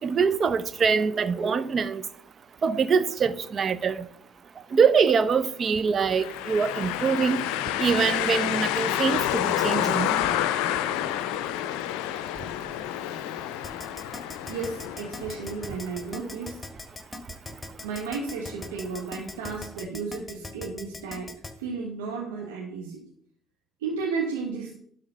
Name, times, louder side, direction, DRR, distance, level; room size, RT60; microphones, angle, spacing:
voice 1, 0.0-2.0 2.6-4.0 4.7-7.4 7.8-10.2, right 5 dB, 45° right, 0.7 m, -24 dB
sound 1, 6.1-15.9, left 12 dB, 75° left, 0.5 m, -29 dB
Keyboard (musical), 13.6-21.5, left 2 dB, 20° left, 1.8 m, -39 dB
voice 2, 14.5-16.6 17.8-21.3 21.6-23.0 23.8-24.7, right 4 dB, 80° right, 1.3 m, -33 dB
11.0 x 3.8 x 6.6 m
hypercardioid pair, 50°, 0 cm